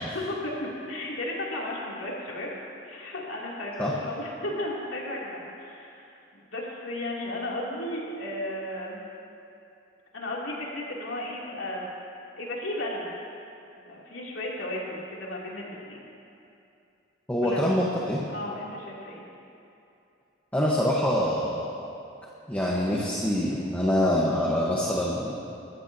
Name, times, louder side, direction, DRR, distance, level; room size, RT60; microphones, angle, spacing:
voice 1, 0.0-2.5 2.8-6.0 6.3-9.0 10.1-11.9 12.4-13.1 13.8-16.1 17.4-17.8 18.3-19.2, left 1 dB, 75° left, -4 dB, 2.8 m, -34 dB
voice 2, 17.3-18.2 20.5-21.9 22.5-25.3, left 1 dB, 10° left, -4 dB, 1.0 m, -25 dB
21.0 x 13.5 x 2.8 m, 2.7 s
head